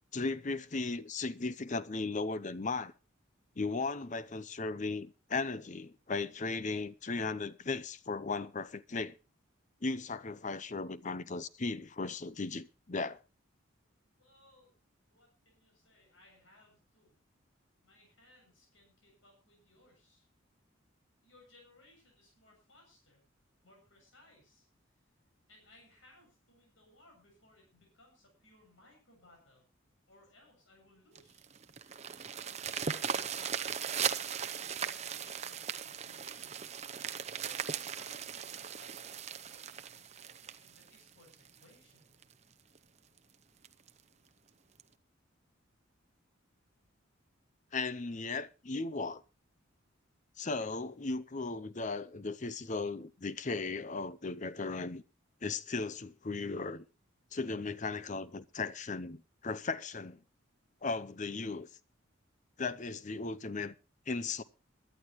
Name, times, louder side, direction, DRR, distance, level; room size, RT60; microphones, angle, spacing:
voice 1, 0.1-2.9 3.6-9.2 9.8-13.2 47.7-49.2 50.4-55.0 55.4-56.8 57.3-60.2 60.8-61.7 62.6-63.7 64.1-64.4, left 3 dB, 35° left, 0.7 m, -36 dB
voice 2, 14.2-14.7 15.1-17.1 17.8-20.3 21.2-23.2 23.6-24.7 25.5-29.6 30.1-31.5 32.3-36.6 37.4-42.1, left 1 dB, 70° left, 7.3 m, -63 dB
sound 1, 31.2-41.6 42.2-42.3 42.7-42.8 43.2-43.3 43.6-43.9 44.8-44.9, right 7 dB, 35° right, 0.7 m, -38 dB
22.5 x 11.5 x 3.1 m
head